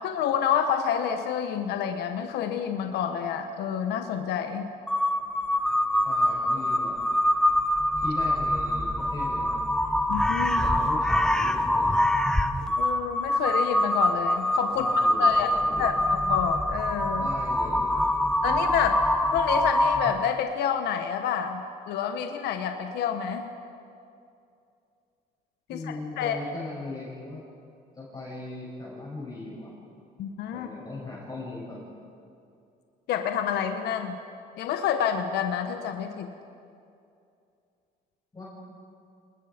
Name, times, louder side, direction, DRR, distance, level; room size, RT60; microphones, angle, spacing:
voice 1, 0.0-4.7 10.1-10.6 12.8-15.5 15.8-17.3 18.4-19.0 19.3-23.5 25.7-25.8 26.2-26.4 30.2-30.7 33.1-34.2 34.6-36.3, left 8 dB, 80° left, 6 dB, 1.3 m, -28 dB
Crow, 4.9-20.4, left 1 dB, 5° left, 0.9 m, -25 dB
voice 2, 6.0-7.0 8.0-9.6 10.5-12.1 14.7-15.9 17.1-18.0 25.7-27.4 27.9-29.7 30.5-31.8 38.3-38.4, left 2 dB, 20° left, -6 dB, 7.6 m, -39 dB
28.5 x 20.5 x 5.2 m, 2.5 s
cardioid pair, 110°, 17 cm